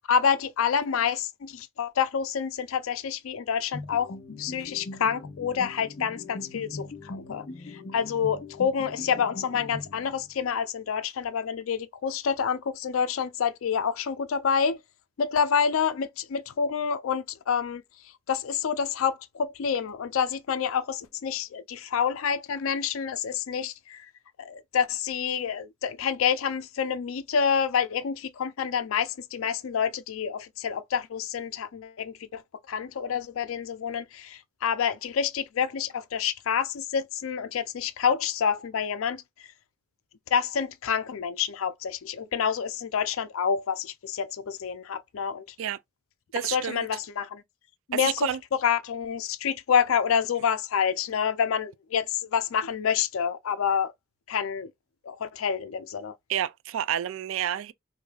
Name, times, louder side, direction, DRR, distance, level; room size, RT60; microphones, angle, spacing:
voice 1, 0.1-14.8 15.2-17.8 18.3-24.1 24.4-32.4 32.7-39.2 40.3-45.5 46.5-47.4 47.9-53.9 54.3-54.7 55.0-56.2, left 7 dB, 85° left, 0.4 m, -28 dB
sound 1, 3.7-10.4, left 2 dB, 50° left, 0.8 m, -41 dB
voice 2, 46.3-46.9 47.9-48.4 56.3-57.7, right 10 dB, 75° right, 0.3 m, -29 dB
4.8 x 2.6 x 2.3 m
head